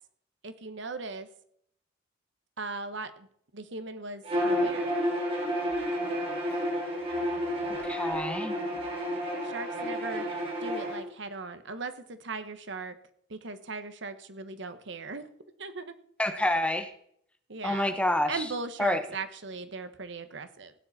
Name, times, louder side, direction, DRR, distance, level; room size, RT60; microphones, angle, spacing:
voice 1, 0.4-1.3 2.6-3.3 3.5-4.9 9.4-10.3 10.6-13.0 13.3-15.3 15.6-15.9 17.5-18.0 18.3-20.7, right 3 dB, 70° right, 10 dB, 1.3 m, -38 dB
Bowed string instrument, 4.2-11.0, equal, 30° right, 4.0 m, -30 dB
voice 2, 7.8-8.5 16.2-16.9 17.6-18.4 18.8-19.0, left 1 dB, 5° left, 8 dB, 1.0 m, -27 dB
16.5 x 9.7 x 4.2 m, 0.67 s
head